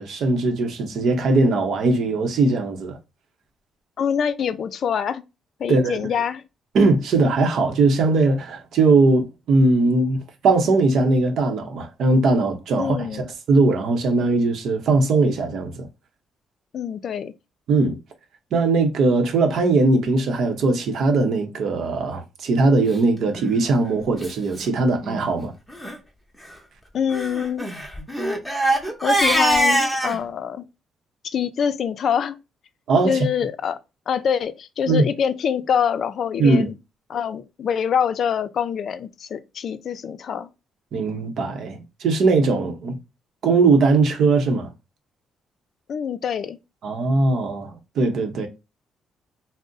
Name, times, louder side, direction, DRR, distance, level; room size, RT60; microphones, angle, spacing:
voice 1, 0.0-3.0 5.7-6.1 6.7-13.1 13.5-15.9 17.7-18.0 18.5-25.5 32.9-33.2 34.9-35.0 36.4-36.7 40.9-43.0 43.4-44.7 46.8-48.5, right 3 dB, 70° right, 0.7 m, -20 dB
voice 2, 4.0-5.2 5.6-6.4 12.8-13.3 16.7-17.3 26.9-27.7 29.0-30.7 31.2-32.4 33.0-33.8 34.1-36.7 37.1-40.5 45.9-46.6, left 7 dB, 60° left, 0.4 m, -25 dB
Crying sobbing, 23.3-23.5 24.2-24.3 24.6-24.7 25.0-25.3 25.7-25.9 27.1-30.2, right 1 dB, ahead, 0.8 m, -23 dB
2.6 x 2.0 x 3.7 m
cardioid pair, 90°, 0 cm